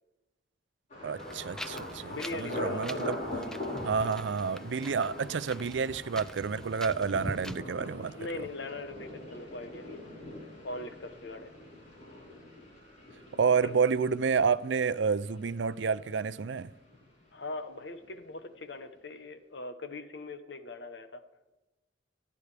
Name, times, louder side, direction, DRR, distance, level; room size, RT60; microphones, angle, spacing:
Thunder, 0.9-16.7 16.9-17.6 18.0-18.2, left 1 dB, 45° left, 4.5 m, -42 dB
voice 1, 1.0-3.2 3.8-8.1 13.3-16.7, right 5 dB, 90° right, 0.5 m, -29 dB
Wind, 1.2-7.6, equal, 5° left, 0.4 m, -44 dB
voice 2, 2.1-3.2 7.2-7.4 8.2-10.0 10.6-11.5 13.6-13.7 17.3-21.2, left 2 dB, 80° left, 1.1 m, -41 dB
26.5 x 9.6 x 3.4 m
head